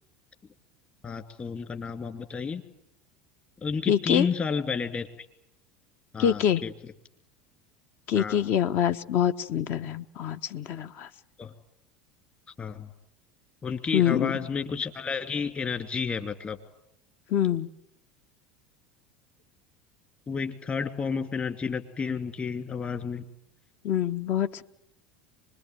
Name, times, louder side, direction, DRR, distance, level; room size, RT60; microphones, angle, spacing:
voice 1, 1.0-2.6 3.6-5.1 6.1-6.7 8.1-8.4 11.4-11.5 12.6-12.9 13.6-16.6 20.3-23.3, left 5 dB, 30° left, 8 dB, 2.8 m, -31 dB
voice 2, 3.9-4.3 6.2-6.6 8.1-11.1 13.9-14.3 17.3-17.7 23.8-24.6, left 9 dB, 50° left, 11 dB, 0.9 m, -25 dB
25.0 x 21.5 x 9.3 m, 0.76 s
figure-of-eight pair, 75°, 5 cm